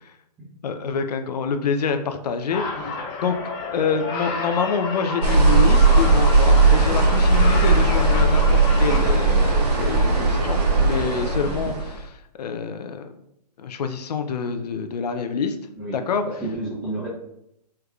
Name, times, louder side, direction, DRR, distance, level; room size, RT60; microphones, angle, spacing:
voice 1, 0.6-2.6 3.2-3.4 3.7-12.1 12.4-13.1 13.6-15.6 15.9-16.2, left 5 dB, 70° left, 7 dB, 0.4 m, -26 dB
sound 1, 2.5-9.1, left 3 dB, 35° left, 0.8 m, -31 dB
sound 2, 5.2-12.0, right 3 dB, 70° right, 1.0 m, -17 dB
voice 2, 15.8-17.1, right 2 dB, 10° right, -10 dB, 0.9 m, -32 dB
3.4 x 3.2 x 2.3 m, 0.79 s
hypercardioid pair, 145°, 21 cm